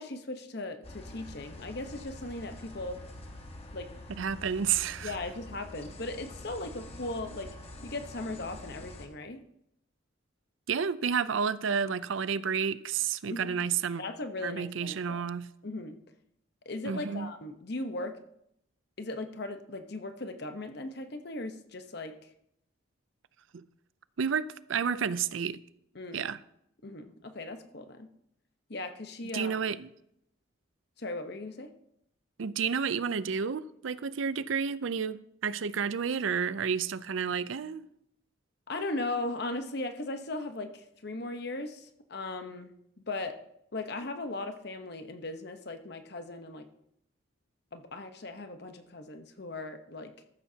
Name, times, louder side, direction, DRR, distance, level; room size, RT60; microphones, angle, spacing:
voice 1, 0.0-3.0 3.7-3.9 5.0-7.5 7.8-9.4 13.3-13.6 14.0-15.2 15.6-16.0 16.6-18.2 19.0-22.2 25.9-26.3 26.8-28.1 28.7-29.7 31.0-31.7 38.7-42.7 43.1-43.4 43.7-46.7 47.7-50.1, left 2 dB, 55° left, 1.0 m, -38 dB
sound 1, 0.8-9.1, left 1 dB, 30° left, 1.2 m, -46 dB
voice 2, 4.2-5.2 10.7-14.0 14.4-15.5 16.8-17.3 23.5-23.6 24.2-25.6 26.1-26.4 29.3-29.9 32.4-37.9, right 6 dB, 75° right, 0.5 m, -31 dB
14.0 x 13.0 x 2.8 m
head